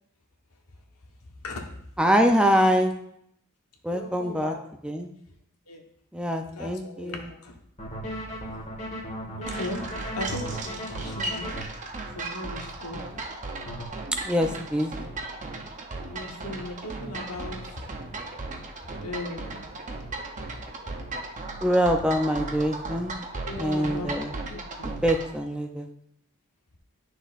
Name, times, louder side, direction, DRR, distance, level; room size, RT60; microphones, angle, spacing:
voice 1, 1.4-1.8 3.9-4.6 5.7-5.8 6.5-7.6 9.4-11.5 12.1-13.3 16.0-17.9 19.0-19.8 23.5-25.0, left 2 dB, 85° left, 2 dB, 1.2 m, -37 dB
voice 2, 2.0-2.9 3.8-4.5 4.8-5.1 6.1-7.3 14.2-14.9 21.6-23.1 23.6-24.3 25.0-25.9, equal, 5° right, 4 dB, 0.5 m, -24 dB
sound 1, 7.8-11.6 13.7-13.9, equal, 30° left, 1.5 m, -36 dB
sound 2, 9.4-25.3, right 2 dB, 35° right, 0.8 m, -36 dB
10.0 x 6.4 x 2.5 m, 0.72 s
head